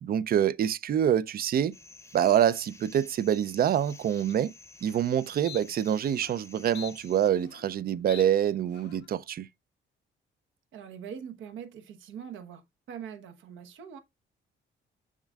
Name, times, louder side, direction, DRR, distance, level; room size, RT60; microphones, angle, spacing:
voice 1, 0.0-1.7 2.1-4.5 4.8-9.5, right 10 dB, 50° right, 0.4 m, -26 dB
sound 1, 1.7-7.3, left 3 dB, 15° left, 0.7 m, -52 dB
sound 2, 4.3-4.4 4.8-5.1 5.4-5.6 6.1-6.4 6.7-7.8 8.1-8.2 8.7-9.1, left 12 dB, 65° left, 0.5 m, -45 dB
voice 2, 10.7-14.0, right 8 dB, 80° right, 1.0 m, -43 dB
7.2 x 6.3 x 2.3 m
cardioid pair, 90°, 20 cm